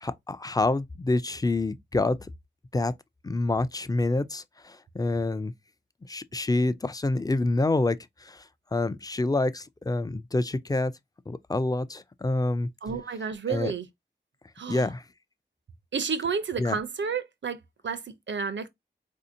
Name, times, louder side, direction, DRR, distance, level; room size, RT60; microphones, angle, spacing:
voice 1, 0.0-2.2 2.7-2.9 3.2-5.5 6.1-8.4 8.7-10.9 11.3-12.7 13.5-13.7 14.7-15.0 16.6-16.8, left 2 dB, 20° left, 0.4 m, -27 dB
voice 2, 12.8-13.9 14.6-14.9 15.9-18.7, right 5 dB, 90° right, 0.6 m, -31 dB
4.1 x 2.7 x 2.6 m
wide cardioid pair, 65°, 18 cm